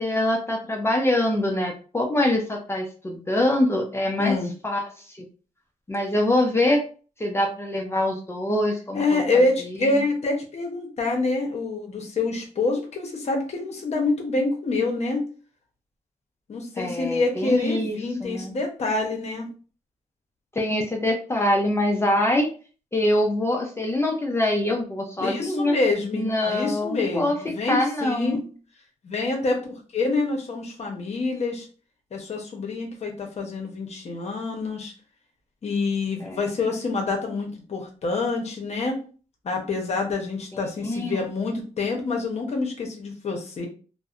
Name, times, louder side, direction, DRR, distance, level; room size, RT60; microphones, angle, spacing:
voice 1, 0.0-4.4 4.6-5.3 5.9-6.9 7.2-9.2 9.6-9.8 16.8-18.5 20.5-22.5 22.9-25.7 26.1-27.4 27.7-28.5 36.2-36.5 40.5-41.3, left 1 dB, 20° left, 1 dB, 0.5 m, -24 dB
voice 2, 4.2-4.5 8.9-15.3 16.5-19.5 25.2-28.4 29.0-31.7 32.1-34.9 35.6-39.0 39.4-43.7, left 3 dB, 55° left, 2 dB, 0.8 m, -26 dB
2.6 x 2.1 x 2.4 m, 0.37 s
cardioid pair, 90°, 13 cm